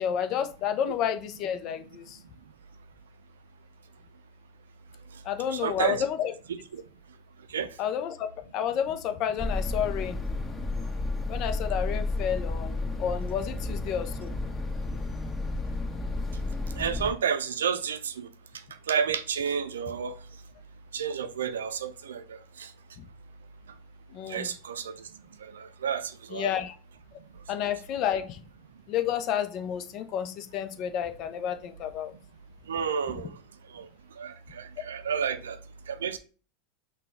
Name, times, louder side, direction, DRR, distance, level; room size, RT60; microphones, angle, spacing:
voice 1, 0.0-2.2 5.2-6.3 7.8-10.2 11.3-14.3 24.1-24.5 26.3-26.7 27.5-28.4 28.9-32.1, left 9 dB, 50° left, 0.6 m, -30 dB
voice 2, 5.5-6.0 6.7-6.8 7.5-7.8 16.8-18.3 18.9-20.2 20.9-22.7 24.3-25.1 25.4-26.5 32.7-33.4 33.7-33.9 34.2-35.6 35.9-36.2, right 7 dB, 85° right, 0.4 m, -31 dB
sound 1, 9.4-17.1, left 2 dB, 20° left, 1.6 m, -32 dB
5.8 x 2.3 x 3.5 m
hypercardioid pair, 95°, 0 cm